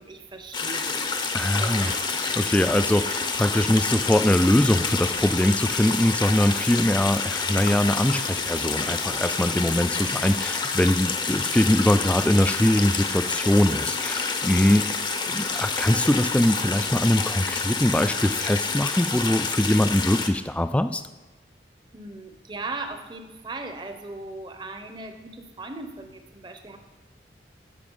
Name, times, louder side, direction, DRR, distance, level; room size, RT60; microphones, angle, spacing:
voice 1, 0.0-1.3 1.6-2.3 21.9-26.8, right 3 dB, 25° right, 7 dB, 0.8 m, -38 dB
sound 1, 0.5-20.3, left 4 dB, 25° left, 0.7 m, -28 dB
voice 2, 1.3-1.9 2.4-21.0, left 1 dB, 5° left, 11 dB, 0.3 m, -22 dB
9.9 x 6.8 x 5.5 m, 1.2 s
head